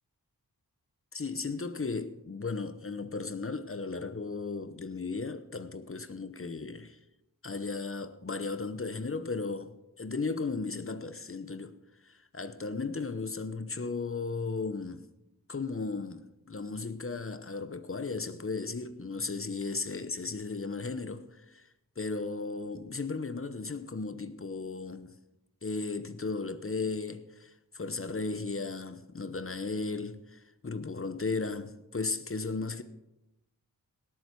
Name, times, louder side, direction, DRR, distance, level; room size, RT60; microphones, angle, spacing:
voice 1, 1.1-7.0 7.4-11.8 12.0-15.1 15.5-21.7 22.0-25.2 25.6-32.8, left 4 dB, 35° left, 0.9 m, -35 dB
18.0 x 8.4 x 4.7 m
cardioid pair, 55°, 37 cm